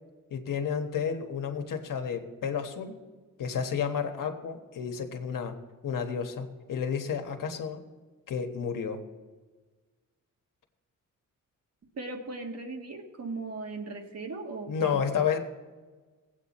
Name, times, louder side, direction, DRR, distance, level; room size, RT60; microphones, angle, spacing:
voice 1, 0.3-3.0 3.4-5.5 5.8-7.8 8.3-9.0 14.7-15.4, left 7 dB, 75° left, 5 dB, 1.3 m, -31 dB
voice 2, 11.9-15.2, right 3 dB, 50° right, 3 dB, 1.6 m, -38 dB
18.5 x 8.3 x 4.2 m, 1.4 s
wide cardioid pair, 125°, 32 cm